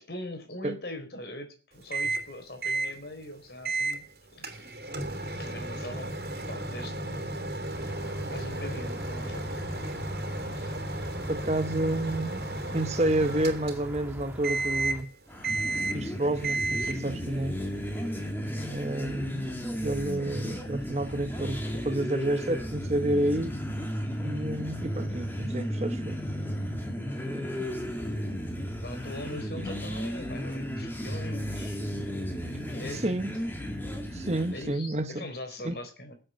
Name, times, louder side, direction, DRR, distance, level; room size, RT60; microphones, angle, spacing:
voice 1, 0.0-4.5 5.3-6.2 6.5-7.4 8.2-9.8 10.5-10.7 18.5-18.7 28.8-31.9 32.6-33.2 34.5-36.1, left 1 dB, 65° left, 4.1 m, -42 dB
Microwave oven, 1.9-2.3 2.6-2.9 3.6-4.0 4.4-14.1 14.4-15.1 15.4-16.1 16.4-17.1, right 2 dB, 60° right, 2.9 m, -33 dB
sound 1, 7.7-15.0, equal, 10° right, 2.0 m, -43 dB
voice 2, 11.3-15.1 15.9-17.6 18.7-19.5 19.8-23.6 24.2-26.3 27.3-27.7 33.0-33.3 34.1-35.3 35.6-35.7, right 1 dB, 40° right, 1.0 m, -30 dB
sound 2, 15.3-34.8, equal, 10° left, 2.5 m, -34 dB
16.5 x 7.9 x 7.7 m
head